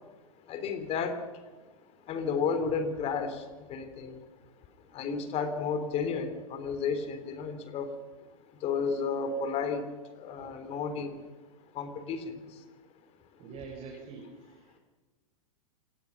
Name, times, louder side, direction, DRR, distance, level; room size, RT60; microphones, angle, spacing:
voice 1, 0.5-1.2 2.1-3.4 3.7-4.2 4.9-7.9 8.6-9.8 10.2-11.2 11.8-12.4, left 5 dB, 35° left, 8 dB, 3.6 m, -32 dB
voice 2, 13.4-14.8, right 5 dB, 30° right, 0 dB, 5.6 m, -45 dB
27.5 x 18.0 x 6.0 m, 1.2 s
hypercardioid pair, 105°, 18 cm